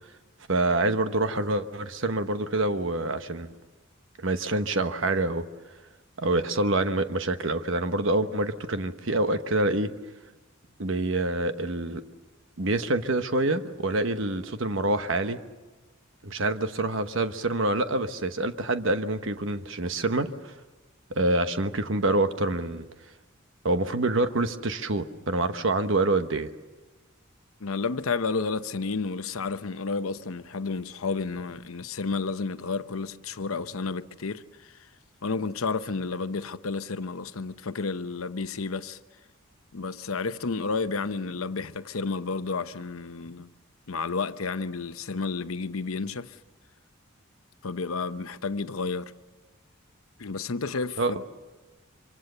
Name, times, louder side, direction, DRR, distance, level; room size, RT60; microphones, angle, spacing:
voice 1, 0.5-3.5 4.2-5.5 6.2-9.9 10.8-12.0 12.6-15.4 16.2-20.5 21.1-22.9 23.6-26.5 51.0-51.2, right 2 dB, 65° right, 1.1 m, -26 dB
voice 2, 27.6-34.9 35.2-39.0 39.7-43.5 43.9-46.4 47.6-49.1 50.2-51.2, left 4 dB, 90° left, 0.8 m, -31 dB
25.5 x 25.0 x 6.7 m
head